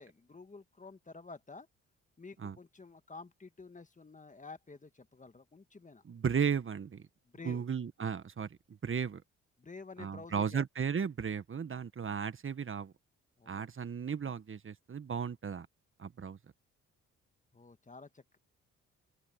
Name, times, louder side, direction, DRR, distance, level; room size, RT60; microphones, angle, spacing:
voice 1, 0.0-1.7 2.2-6.0 7.3-7.6 9.6-10.6 13.4-13.7 17.5-18.4, left 4 dB, 25° left, 1.8 m, -50 dB
voice 2, 6.0-7.0 7.4-9.2 10.0-12.9 13.5-15.7 16.0-16.4, right 7 dB, 40° right, 1.6 m, -35 dB
open air
supercardioid pair, 60°, 31 cm